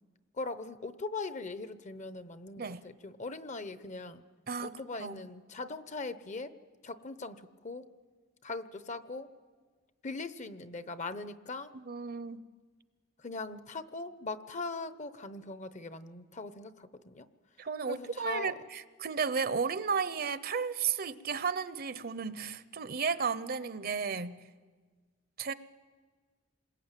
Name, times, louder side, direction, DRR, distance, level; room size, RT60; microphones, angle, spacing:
voice 1, 0.3-4.2 4.6-6.5 6.8-7.8 8.4-9.3 10.0-11.7 13.2-17.3 17.9-18.5, left 3 dB, 35° left, 12 dB, 0.9 m, -40 dB
voice 2, 4.5-5.2 11.7-12.4 17.6-24.4 25.4-25.5, right 6 dB, 50° right, 14 dB, 0.8 m, -34 dB
27.5 x 21.0 x 9.1 m, 1.5 s
head